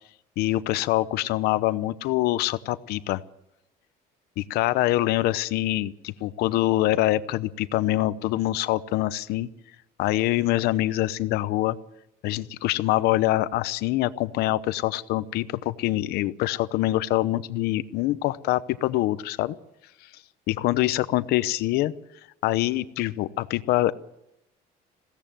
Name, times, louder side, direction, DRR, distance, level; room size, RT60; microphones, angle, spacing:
voice 1, 0.4-3.2 4.4-9.5 10.0-11.8 12.2-19.6 20.5-21.9 22.4-23.9, left 16 dB, 80° left, 15 dB, 0.9 m, -25 dB
21.0 x 16.5 x 7.6 m, 0.86 s
cardioid pair, 165°, 16 cm